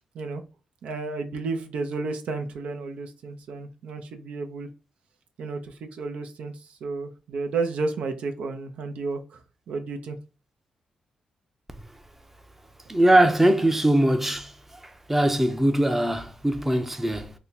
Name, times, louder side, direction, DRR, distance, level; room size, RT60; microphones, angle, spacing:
voice 1, 0.8-4.7 5.4-10.2, right 3 dB, 75° right, 0.5 m, -32 dB
voice 2, 12.9-14.5 15.1-17.3, right 1 dB, 10° right, 0.6 m, -21 dB
2.7 x 2.2 x 4.0 m
supercardioid pair, 55°, 2 cm